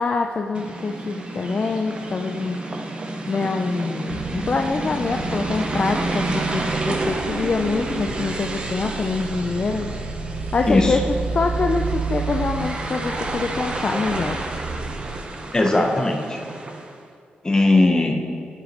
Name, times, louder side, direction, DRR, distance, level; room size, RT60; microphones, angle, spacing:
voice 1, 0.0-2.9 3.3-9.9 10.5-11.0 11.3-14.4, left 4 dB, 35° left, 4 dB, 0.3 m, -25 dB
sound 1, 0.5-17.0, right 2 dB, 30° right, 0.6 m, -30 dB
sound 2, 4.1-15.2, right 5 dB, 90° right, 0.5 m, -32 dB
voice 2, 10.7-11.0 15.5-16.4 17.4-18.1, left 2 dB, 20° left, 2 dB, 0.7 m, -18 dB
9.5 x 6.8 x 2.9 m, 2.3 s
wide cardioid pair, 160°, 4 cm